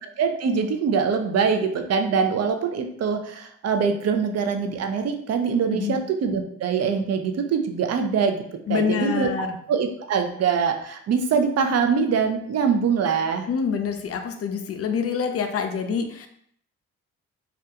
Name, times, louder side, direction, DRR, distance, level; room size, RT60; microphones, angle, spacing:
voice 1, 0.2-8.4 8.7-13.4, right 6 dB, 50° right, 6 dB, 0.5 m, -23 dB
voice 2, 8.7-9.6 13.5-16.3, left 6 dB, 45° left, 6 dB, 0.5 m, -26 dB
2.4 x 2.2 x 2.8 m, 0.68 s
supercardioid pair, 50°, 34 cm